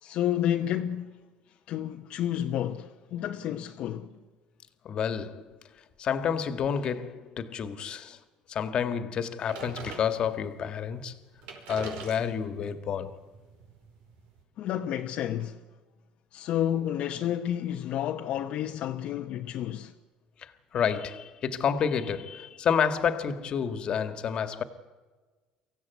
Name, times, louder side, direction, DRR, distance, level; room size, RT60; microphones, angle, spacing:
voice 1, 0.0-1.2 1.7-4.2 14.6-15.6 16.3-19.9, left 11 dB, 60° left, 1.1 m, -30 dB
voice 2, 4.8-5.6 6.0-8.2 8.5-11.2 11.7-13.2 20.4-24.6, left 7 dB, 45° left, 1.8 m, -29 dB
sound 1, 9.5-10.5 11.1-11.2 11.4-14.4, right 5 dB, 85° right, 5.1 m, -44 dB
24.5 x 16.0 x 9.5 m
cardioid pair, 135°, 2 cm